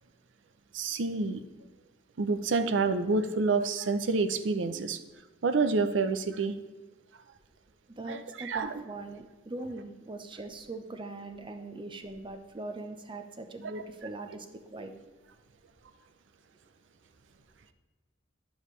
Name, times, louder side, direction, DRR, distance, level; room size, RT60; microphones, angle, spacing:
voice 1, 0.7-1.4 2.2-5.0 5.4-6.6 8.0-8.8 13.6-13.7, right 4 dB, 80° right, 9 dB, 0.5 m, -28 dB
voice 2, 8.0-14.9, right 2 dB, 25° right, 7 dB, 0.7 m, -41 dB
10.0 x 7.1 x 3.2 m, 1.3 s
head